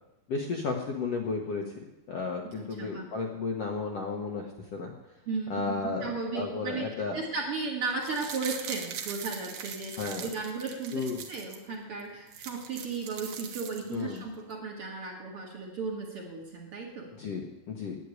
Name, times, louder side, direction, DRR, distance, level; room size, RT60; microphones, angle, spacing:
voice 1, 0.3-1.7 2.1-4.9 5.5-7.2 10.0-10.3 10.9-11.2 13.9-14.2 17.2-18.0, left 4 dB, 60° left, 1 dB, 1.7 m, -33 dB
voice 2, 2.4-3.1 5.3-5.7 6.0-6.9 7.1-17.1, right 4 dB, 45° right, 0 dB, 2.2 m, -35 dB
sound 1, 7.9-11.6 12.0-12.1 12.3-14.2 14.5-14.6, right 8 dB, 70° right, 2.5 m, -41 dB
10.0 x 9.3 x 9.5 m, 0.96 s
omnidirectional pair, 4.1 m